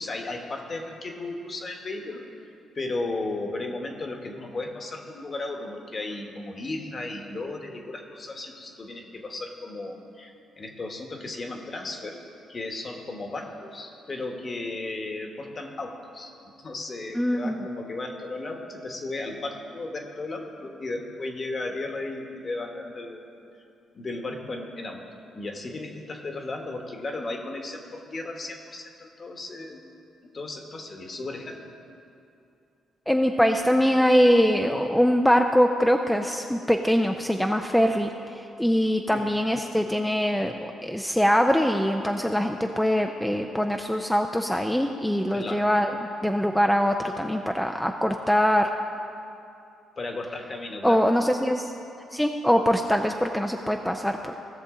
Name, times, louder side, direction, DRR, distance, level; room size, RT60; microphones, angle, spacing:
voice 1, 0.0-2.2 2.7-12.2 12.5-16.3 16.6-23.2 23.9-25.0 25.3-29.8 30.2-31.6 39.1-39.3 45.3-45.7 50.0-51.1, left 2 dB, 35° left, 3 dB, 1.3 m, -35 dB
voice 2, 17.1-17.5 33.1-38.1 38.4-45.9 46.2-48.7 50.8-51.7 52.1-54.3, equal, 5° left, 4 dB, 0.5 m, -23 dB
16.0 x 6.5 x 3.8 m, 2.6 s
cardioid pair, 90°, 0 cm